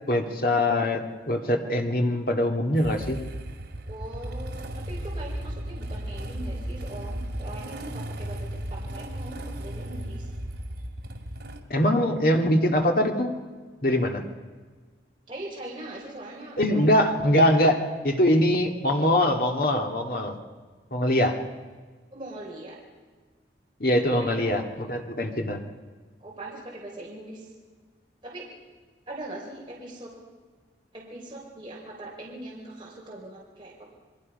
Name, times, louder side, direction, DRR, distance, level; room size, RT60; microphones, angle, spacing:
voice 1, 0.1-3.2 11.7-13.3 13.8-14.2 16.6-20.4 20.9-21.3 23.8-25.6, left 1 dB, 50° left, 3 dB, 2.2 m, -23 dB
Motorcycle / Engine starting, 2.8-11.6, right 1 dB, 70° right, 2.5 m, -35 dB
voice 2, 3.9-10.3 15.3-17.0 22.1-22.8 23.9-24.5 26.2-27.5 28.2-28.5 29.1-30.2 30.9-33.9, right 1 dB, 30° right, -4 dB, 3.6 m, -41 dB
28.5 x 22.0 x 5.4 m, 1.4 s
head